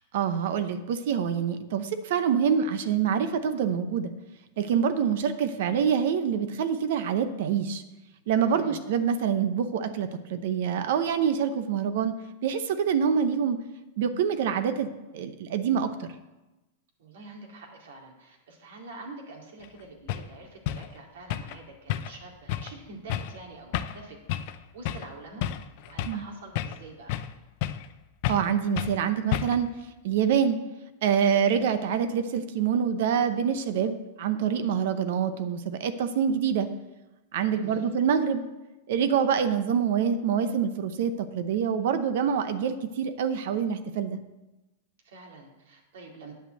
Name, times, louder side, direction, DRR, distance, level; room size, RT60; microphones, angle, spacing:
voice 1, 0.1-4.1 4.6-7.8 8.3-12.1 12.4-13.6 14.0-16.1 26.1-26.2 28.3-29.7 30.0-30.6 31.0-36.7 37.3-38.4 38.9-44.2, right 7 dB, 65° right, 10 dB, 0.8 m, -26 dB
voice 2, 8.4-8.8 17.0-24.2 24.7-25.5 25.8-27.2 37.5-37.9 45.0-46.3, right 3 dB, 80° right, 0 dB, 2.3 m, -46 dB
sound 1, 19.6-19.7 20.1-20.3 20.7-20.9 21.3-21.6 21.9-22.2 22.5-22.7 23.1-23.4 23.7-24.0 24.3-24.6 24.9-25.1 25.4-26.2 26.6-27.3 27.6-27.9 28.2-28.5 28.8-29.0 29.3-29.7, left 11 dB, 45° left, 0.5 m, -31 dB
9.1 x 5.6 x 7.6 m, 1.0 s
supercardioid pair, 155°, 0 cm